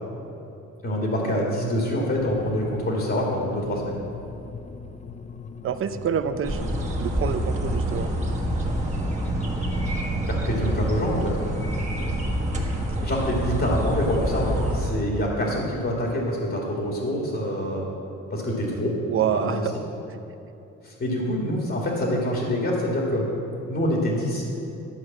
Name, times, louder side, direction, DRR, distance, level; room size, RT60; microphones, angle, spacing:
voice 1, 0.8-4.0 10.3-11.3 13.0-17.9 18.3-18.9 19.3-19.6 20.8-23.3 23.7-24.4, equal, 40° left, -2 dB, 2.0 m, -26 dB
sound 1, 2.2-10.1, left 5 dB, 25° left, 0.5 m, -40 dB
voice 2, 5.6-6.6 7.0-8.1 19.1-19.7 20.1-20.2, right 8 dB, 45° right, 10 dB, 0.6 m, -27 dB
sound 2, 6.4-14.9, right 1 dB, 25° right, 1.5 m, -27 dB
12.0 x 4.7 x 7.2 m, 2.9 s
cardioid pair, 90°, 30 cm